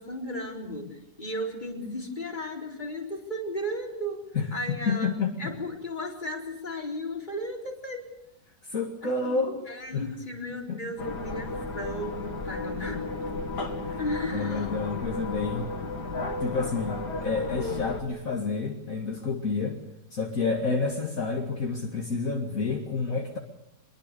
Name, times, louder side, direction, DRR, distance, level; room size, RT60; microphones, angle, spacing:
voice 1, 0.0-5.1 5.4-8.1 9.0-13.0 13.9-14.7, left 1 dB, 25° left, -1 dB, 4.4 m, -35 dB
voice 2, 4.3-5.5 8.6-9.6 9.9-10.0 10.7-10.8 13.8-14.0 14.3-15.7 16.1-19.8 20.1-23.4, left 4 dB, 50° left, 1 dB, 2.4 m, -29 dB
sound 1, 11.0-18.0, left 3 dB, 70° left, 3.0 m, -33 dB
25.0 x 22.5 x 6.8 m, 0.86 s
omnidirectional pair, 1.9 m